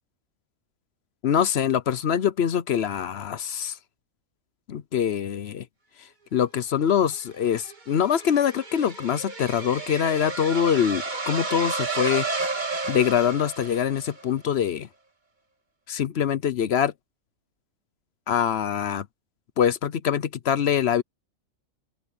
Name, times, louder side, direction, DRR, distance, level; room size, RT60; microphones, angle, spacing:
voice 1, 1.2-3.8 4.7-5.7 6.3-12.3 12.5-14.9 15.9-16.9 18.3-19.1 19.6-21.0, left 8 dB, 55° left, 0.8 m, -24 dB
sound 1, 7.1-14.2, right 3 dB, 35° right, 2.0 m, -32 dB
open air
omnidirectional pair, 1.4 m